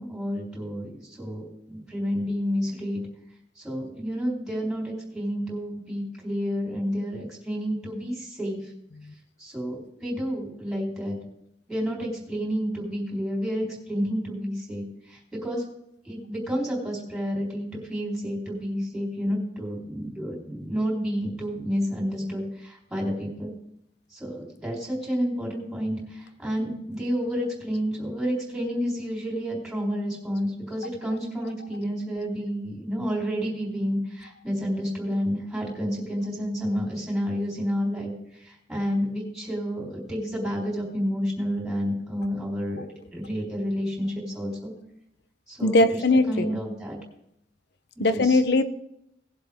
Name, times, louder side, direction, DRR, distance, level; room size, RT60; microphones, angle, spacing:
voice 1, 0.0-3.0 3.6-8.7 9.4-11.2 11.7-15.6 16.0-23.5 24.1-42.9 43.1-44.7 45.5-47.0 48.0-48.4, equal, ahead, -3 dB, 4.0 m, -30 dB
voice 2, 45.6-46.6 48.0-48.6, left 2 dB, 60° left, 12 dB, 0.8 m, -21 dB
18.5 x 7.7 x 3.6 m, 0.79 s
head